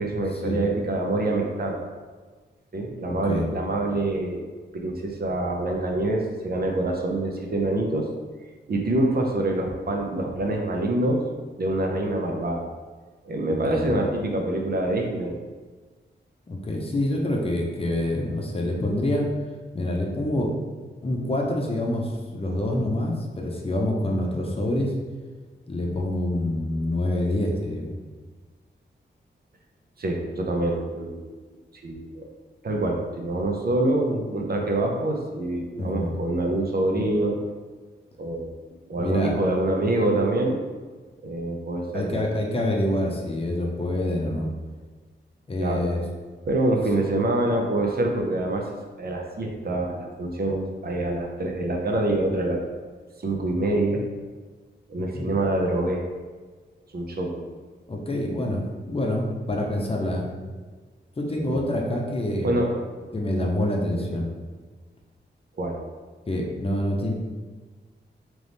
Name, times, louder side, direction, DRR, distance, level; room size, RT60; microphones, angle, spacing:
voice 1, 0.0-1.8 2.7-4.5 4.7-8.1 8.7-11.2 11.6-12.7 13.2-15.4 30.0-31.3 31.8-32.3 32.6-37.4 38.2-38.5 38.9-40.6 41.2-42.3 45.6-45.9 46.5-48.6 49.0-52.6 53.2-54.0 54.9-56.0 56.9-57.5 61.4-61.6 62.4-62.7 64.0-64.2 65.6-65.8, right 2 dB, 55° right, 1 dB, 0.6 m, -25 dB
voice 2, 16.5-19.3 19.7-20.5 21.0-24.9 25.7-28.0 35.8-36.2 39.0-39.3 41.9-44.5 45.5-46.0 55.0-55.3 57.9-60.3 61.2-62.5 63.1-64.3 66.3-67.1, left 1 dB, 30° left, -1 dB, 0.7 m, -26 dB
3.4 x 3.0 x 4.0 m, 1.4 s
wide cardioid pair, 105°, 19 cm